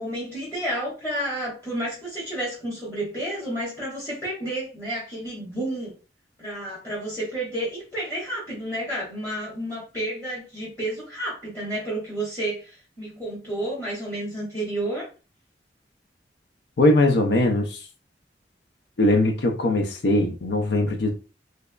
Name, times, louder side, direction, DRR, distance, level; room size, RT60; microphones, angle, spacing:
voice 1, 0.0-5.9 6.4-15.1, right 1 dB, 15° left, 1.3 m, -31 dB
voice 2, 16.8-17.8 19.0-21.1, left 1 dB, 70° left, 0.5 m, -20 dB
3.3 x 3.3 x 2.2 m
head